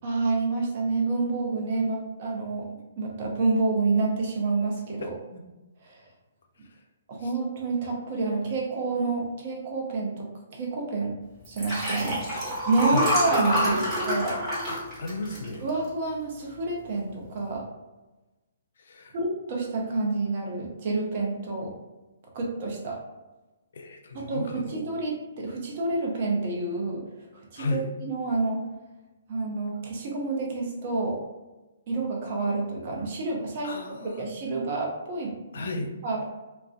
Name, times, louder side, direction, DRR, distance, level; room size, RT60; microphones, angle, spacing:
voice 1, 0.0-5.1 5.8-6.0 7.1-11.1 11.5-12.2 12.7-14.4 15.6-17.6 19.1-21.7 22.3-23.0 24.1-27.0 27.3-28.6 29.3-31.2 31.9-33.8 34.2-35.4 36.0-36.3, right 3 dB, 45° right, -1 dB, 0.7 m, -28 dB
voice 2, 5.0-5.4 12.3-12.4 12.8-13.1 14.7-15.7 18.8-19.1 23.7-24.9 27.5-27.9 33.6-34.3 35.5-35.9, left 2 dB, 65° left, 3 dB, 0.4 m, -34 dB
Liquid, 11.4-16.1 16.6-16.8 17.1-17.2, equal, 15° right, 1.2 m, -27 dB
2.4 x 2.1 x 2.4 m, 1.1 s
figure-of-eight pair, 130°, 0 cm